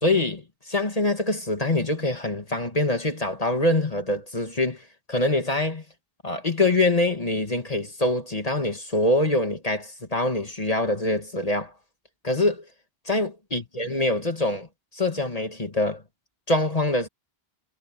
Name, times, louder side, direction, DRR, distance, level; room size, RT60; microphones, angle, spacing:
voice 1, 0.0-5.8 6.2-11.7 12.2-12.6 13.1-14.7 14.9-16.0 16.5-17.1, left 2 dB, 35° left, 2.2 m, -24 dB
omnidirectional pair, 1.1 m